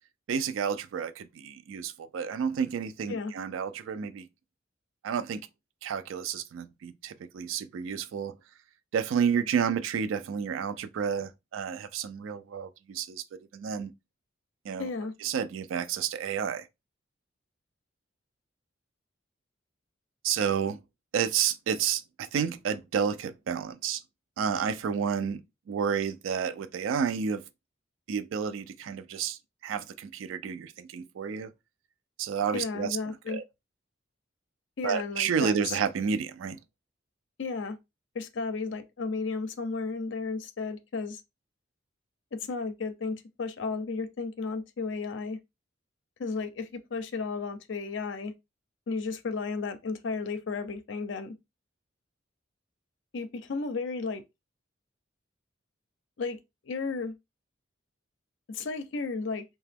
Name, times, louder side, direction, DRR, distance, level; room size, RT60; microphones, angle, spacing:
voice 1, 0.3-4.3 5.0-5.5 5.8-8.3 8.9-13.2 13.5-13.9 14.7-14.9 15.2-16.7 20.2-20.8 21.1-24.0 24.4-25.4 25.7-27.4 28.1-31.5 32.2-33.0 33.3-33.4 34.8-36.6, right 7 dB, 90° right, 0.3 m, -30 dB
voice 2, 14.8-15.1 32.5-33.4 34.8-35.8 37.4-37.8 38.1-41.2 42.3-45.4 46.2-48.3 48.9-51.4 53.1-54.2 56.2-56.4 56.7-57.2 58.5-59.4, left 4 dB, 65° left, 0.5 m, -33 dB
2.8 x 2.2 x 3.4 m
head